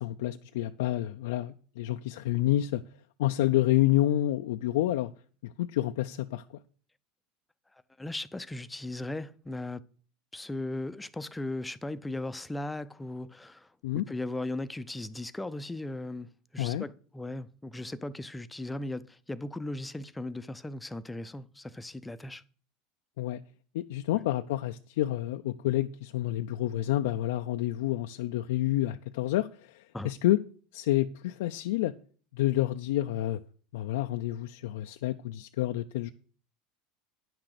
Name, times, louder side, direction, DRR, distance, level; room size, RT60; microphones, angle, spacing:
voice 1, 0.0-2.8 3.2-5.1 5.4-6.4 13.8-14.0 16.6-16.8 23.2-23.4 23.7-30.4 30.7-31.9 32.3-33.4 33.7-36.1, left 14 dB, 80° left, 0.4 m, -29 dB
voice 2, 8.0-9.8 10.3-13.7 13.9-22.4 24.1-24.2 29.9-30.1, left 2 dB, 10° left, 0.5 m, -37 dB
9.7 x 6.0 x 6.6 m
supercardioid pair, 125°, 0 cm